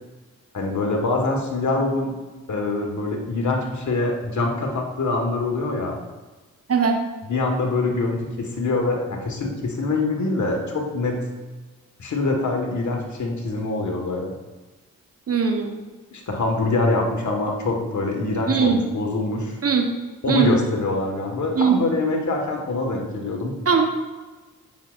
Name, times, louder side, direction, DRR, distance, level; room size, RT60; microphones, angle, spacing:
voice 1, 0.5-2.1 2.5-6.0 7.3-11.2 12.0-14.3 16.1-19.6 20.2-23.5, left 2 dB, 55° left, 1 dB, 1.5 m, -24 dB
voice 2, 15.3-15.7 18.5-18.8 19.6-19.9 20.3-20.5 21.6-21.8 23.7-23.8, right 6 dB, 40° right, 4 dB, 1.0 m, -19 dB
7.9 x 6.2 x 2.5 m, 1.2 s
hypercardioid pair, 40°, 35 cm